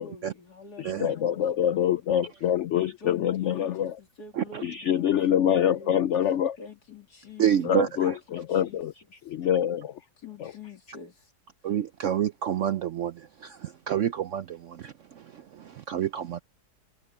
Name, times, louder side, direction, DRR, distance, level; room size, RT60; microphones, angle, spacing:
voice 1, 0.0-2.1 2.8-6.0 6.6-8.8 10.2-11.3 11.6-11.7, left 5 dB, 65° left, 2.8 m, -48 dB
voice 2, 0.8-4.0 4.6-6.6 7.6-8.9 9.2-10.0 10.4-10.5, left 10 dB, 90° left, 0.6 m, -25 dB
voice 3, 7.4-8.2 11.6-16.4, right 10 dB, 65° right, 0.7 m, -29 dB
omnidirectional pair, 1.8 m